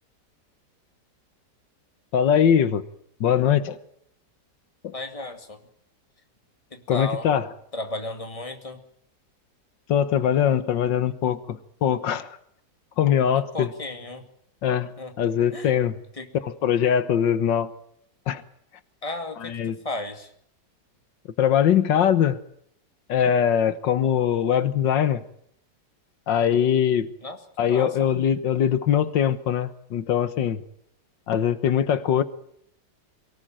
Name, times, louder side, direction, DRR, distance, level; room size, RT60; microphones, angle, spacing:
voice 1, 2.1-2.8 3.2-3.8 4.8-4.9 6.9-7.5 9.9-12.4 13.0-13.7 14.6-14.9 15.2-16.0 16.4-17.7 18.3-18.4 19.4-19.8 21.4-22.4 23.1-25.2 26.3-27.1 27.6-30.6 31.3-32.2, left 9 dB, 90° left, 13 dB, 1.9 m, -22 dB
voice 2, 4.9-5.6 6.7-7.3 7.7-8.8 13.3-14.2 15.0-15.7 16.2-16.3 19.0-20.3 27.2-28.1, left 2 dB, 20° left, 5 dB, 2.4 m, -34 dB
23.5 x 18.5 x 9.0 m, 0.70 s
omnidirectional pair, 1.9 m